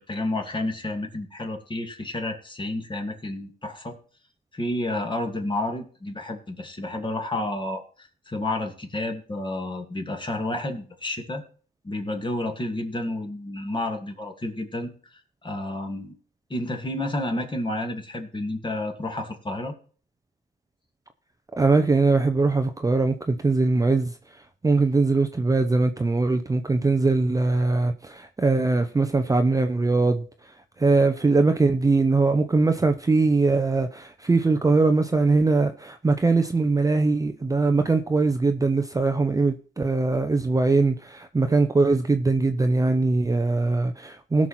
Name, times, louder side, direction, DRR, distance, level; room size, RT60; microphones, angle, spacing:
voice 1, 0.0-4.0 4.5-11.4 11.8-16.1 16.5-19.7, left 1 dB, 25° left, 2.6 m, -30 dB
voice 2, 21.6-44.5, right 3 dB, 15° right, 0.8 m, -21 dB
17.0 x 6.1 x 4.3 m
cardioid pair, 90°, 20 cm